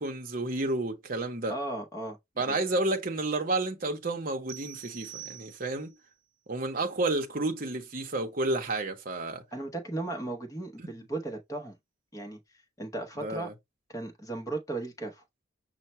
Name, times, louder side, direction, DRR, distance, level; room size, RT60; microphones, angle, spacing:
voice 1, 0.0-1.5 2.4-5.9 6.5-9.4 13.2-13.5, right 2 dB, 45° right, 0.8 m, -31 dB
voice 2, 1.5-2.6 9.5-11.8 12.1-13.5 13.9-15.2, right 2 dB, 15° left, 0.9 m, -36 dB
sound 1, 4.5-6.0, right 12 dB, 80° right, 0.5 m, -45 dB
5.7 x 2.1 x 4.2 m
head